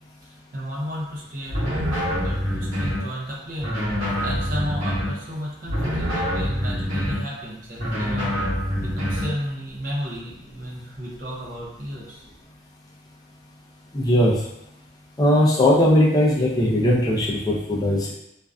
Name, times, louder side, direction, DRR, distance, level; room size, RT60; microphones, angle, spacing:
voice 1, 0.2-3.7 4.2-8.4 8.8-12.2, equal, 45° right, -5 dB, 0.6 m, -33 dB
sound 1, 1.5-3.1 3.6-5.2 5.7-7.3 7.8-9.3, equal, 80° right, 1.0 m, -25 dB
voice 2, 13.9-14.4 15.2-18.1, left 1 dB, 20° left, -4 dB, 0.4 m, -19 dB
2.5 x 2.1 x 2.3 m, 0.85 s
head